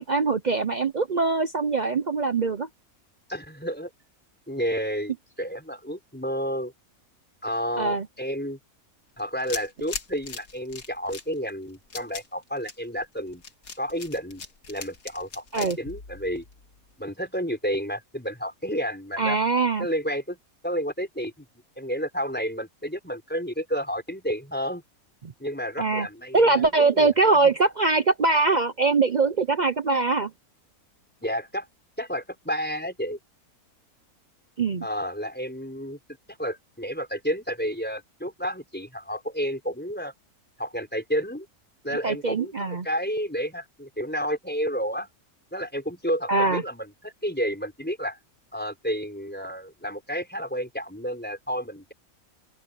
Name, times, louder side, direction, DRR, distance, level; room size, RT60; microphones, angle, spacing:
voice 1, 0.0-2.7 7.8-8.1 15.5-15.8 19.2-19.9 25.2-25.3 25.8-26.1 26.3-30.3 34.6-34.9 42.0-42.9 46.3-46.6, right 3 dB, 50° right, 0.5 m, -22 dB
voice 2, 3.3-3.9 4.5-6.7 7.4-8.6 9.2-13.4 13.8-14.4 14.7-16.4 17.0-19.4 19.8-20.4 20.6-21.4 21.8-24.8 25.4-27.1 31.2-31.7 32.0-33.2 34.8-36.0 36.4-40.1 40.6-41.5 41.8-45.1 45.5-48.2 48.5-51.9, equal, 5° left, 5.1 m, -31 dB
sound 1, 9.2-16.9, left 4 dB, 70° left, 2.5 m, -39 dB
open air
omnidirectional pair, 1.6 m